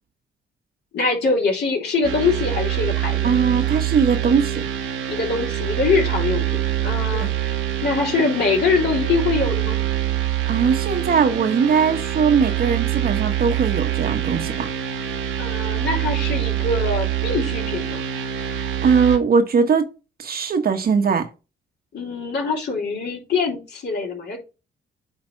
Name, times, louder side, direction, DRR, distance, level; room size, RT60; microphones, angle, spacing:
voice 1, 0.9-3.3 5.1-7.5 7.8-9.8 15.4-18.0 21.9-24.4, left 4 dB, 60° left, 3.4 m, -23 dB
sound 1, 2.0-19.2, right 12 dB, 85° right, 1.5 m, -25 dB
voice 2, 3.2-4.6 7.2-7.3 10.5-14.7 18.5-19.9 20.2-21.3, right 6 dB, 50° right, 1.2 m, -20 dB
9.1 x 3.3 x 4.5 m
cardioid pair, 90°, 20 cm